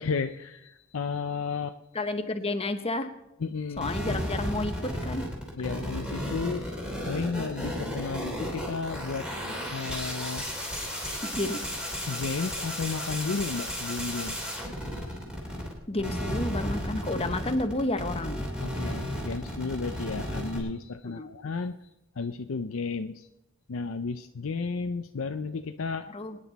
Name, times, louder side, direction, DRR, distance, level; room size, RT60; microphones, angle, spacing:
voice 1, 0.0-1.8 3.4-3.9 5.6-10.5 12.1-15.1 18.6-21.7 22.2-23.3 23.7-26.1, left 4 dB, 70° left, 7 dB, 0.6 m, -33 dB
voice 2, 1.9-3.1 3.8-5.3 11.2-11.7 15.9-18.4 21.0-21.3 26.1-26.4, left 2 dB, 30° left, 8 dB, 1.0 m, -31 dB
sound 1, 3.8-15.7 16.0-20.6, equal, 5° right, 3.3 m, -33 dB
24.0 x 9.9 x 4.1 m, 0.89 s
head